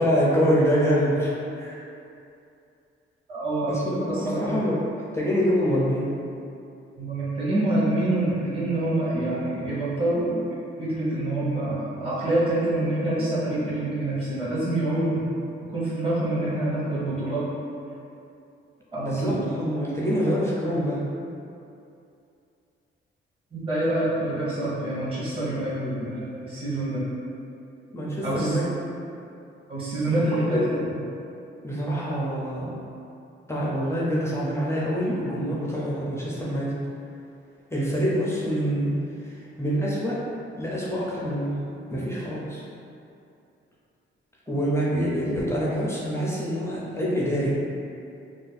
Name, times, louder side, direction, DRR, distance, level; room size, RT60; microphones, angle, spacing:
voice 1, 0.0-1.8 3.6-4.8 5.1-6.1 19.0-21.0 27.9-28.7 30.1-30.6 31.6-32.8 33.5-36.8 37.7-40.3 40.6-41.6 41.9-42.6 44.5-47.5, equal, 15° left, -6 dB, 0.4 m, -26 dB
voice 2, 3.3-3.8 4.1-4.6 7.0-15.3 15.7-17.5 18.9-19.4 23.5-27.0 28.2-28.5 29.7-31.0, right 1 dB, 25° right, -10 dB, 0.9 m, -26 dB
2.5 x 2.3 x 3.9 m, 2.6 s
wide cardioid pair, 160°, 21 cm